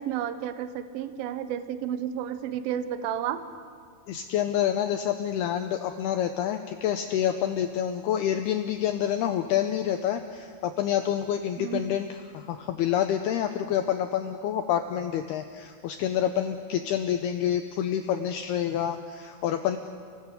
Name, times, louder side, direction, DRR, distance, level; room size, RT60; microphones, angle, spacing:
voice 1, 0.0-3.4 11.6-11.9, right 10 dB, 75° right, 10 dB, 2.2 m, -31 dB
voice 2, 4.1-12.1 12.3-19.8, left 10 dB, 85° left, 6 dB, 2.3 m, -27 dB
29.5 x 18.5 x 8.2 m, 2.2 s
omnidirectional pair, 5.5 m